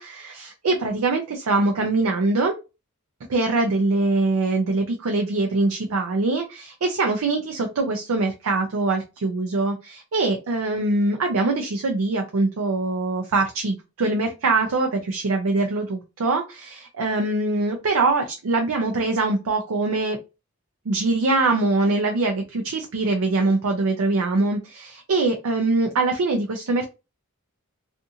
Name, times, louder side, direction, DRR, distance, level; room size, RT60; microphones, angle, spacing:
voice 1, 0.0-2.5 3.3-20.2 20.9-26.8, right 3 dB, 80° right, 0.5 m, -23 dB
2.5 x 2.5 x 2.7 m
head